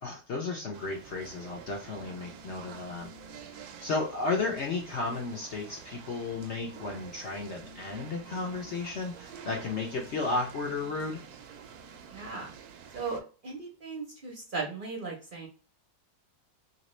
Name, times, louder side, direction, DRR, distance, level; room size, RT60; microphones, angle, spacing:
voice 1, 0.0-3.1 3.8-11.2, left 3 dB, 60° left, 0 dB, 0.7 m, -33 dB
sound 1, 0.7-13.2, right 6 dB, 70° right, 0.9 m, -48 dB
voice 2, 12.1-12.5 12.9-15.5, right 4 dB, 50° right, -1 dB, 0.6 m, -37 dB
2.9 x 2.8 x 3.0 m, 0.35 s
omnidirectional pair, 1.9 m